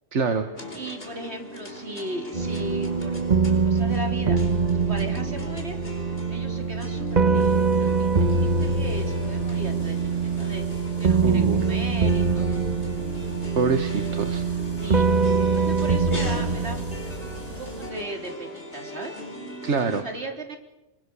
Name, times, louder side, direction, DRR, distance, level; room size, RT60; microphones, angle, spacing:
voice 1, 0.1-0.5 11.2-11.6 13.6-14.4 19.6-20.0, right 5 dB, 85° right, 7 dB, 1.7 m, -25 dB
sound 1, 0.5-20.0, equal, 55° left, 4.8 m, -39 dB
voice 2, 0.7-3.2 3.5-4.4 4.7-5.8 6.3-10.6 11.0-12.6 14.8-15.0 15.5-19.1 19.8-20.6, right 1 dB, 70° right, 3 dB, 3.9 m, -37 dB
sound 2, 2.3-17.8, right 4 dB, 40° right, 1.1 m, -24 dB
sound 3, 7.3-17.9, right 1 dB, 20° left, 5.5 m, -44 dB
27.0 x 22.5 x 6.9 m, 0.98 s
omnidirectional pair, 1.2 m